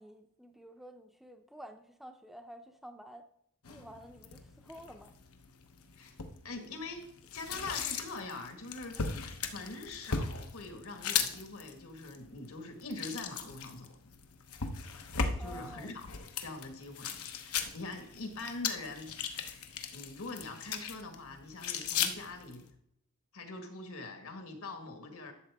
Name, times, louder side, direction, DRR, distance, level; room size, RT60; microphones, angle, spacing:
voice 1, 0.0-3.2 3.7-5.1 9.0-9.1 15.4-15.9, equal, ahead, 5 dB, 0.5 m, -50 dB
sound 1, 3.6-22.7, left 6 dB, 90° left, 1.0 m, -39 dB
voice 2, 6.4-7.0 7.3-9.2 9.5-13.9 15.4-16.1 16.4-19.1 19.9-22.6 23.3-25.3, left 3 dB, 75° left, 4 dB, 1.8 m, -43 dB
12.0 x 7.4 x 3.5 m, 0.73 s
head